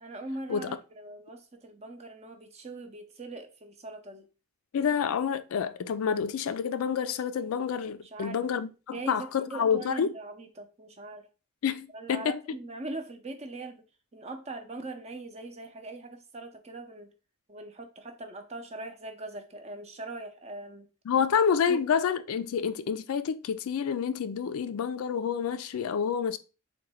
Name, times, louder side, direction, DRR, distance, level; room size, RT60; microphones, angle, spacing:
voice 1, 0.0-4.3 8.0-8.4 8.9-11.3 11.9-13.8 14.1-17.1 17.5-20.9 21.7-21.8, right 2 dB, 30° right, 0.5 m, -41 dB
voice 2, 4.7-10.1 11.6-12.4 21.1-26.4, left 7 dB, 75° left, 0.4 m, -28 dB
3.7 x 2.2 x 4.1 m
head